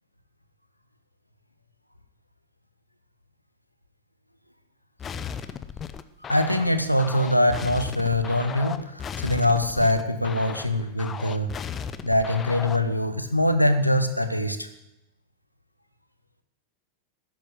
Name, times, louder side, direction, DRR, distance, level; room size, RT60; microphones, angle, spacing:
sound 1, 5.0-12.9, left 7 dB, 25° left, 0.9 m, -36 dB
voice 1, 6.3-11.5 12.0-14.7, left 1 dB, 90° left, 10 dB, 1.3 m, -23 dB
13.0 x 10.5 x 8.2 m, 0.88 s
figure-of-eight pair, 90°, 0 cm